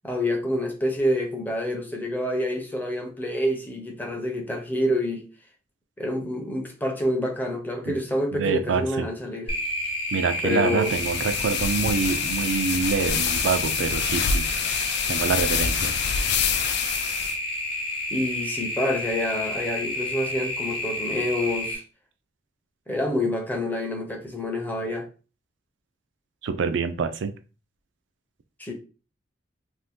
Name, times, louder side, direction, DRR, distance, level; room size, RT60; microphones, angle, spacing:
voice 1, 0.0-5.3 6.0-9.5 10.4-11.0 18.1-21.8 22.9-25.1 28.6-28.7, left 1 dB, 10° left, 0.6 m, -27 dB
voice 2, 8.3-9.1 10.1-14.5 15.1-16.0 26.4-27.3, right 5 dB, 75° right, 0.4 m, -26 dB
sound 1, 9.5-21.7, left 1 dB, 30° left, 1.0 m, -30 dB
sound 2, 10.8-17.4, left 7 dB, 60° left, 0.3 m, -27 dB
2.7 x 2.5 x 3.5 m
head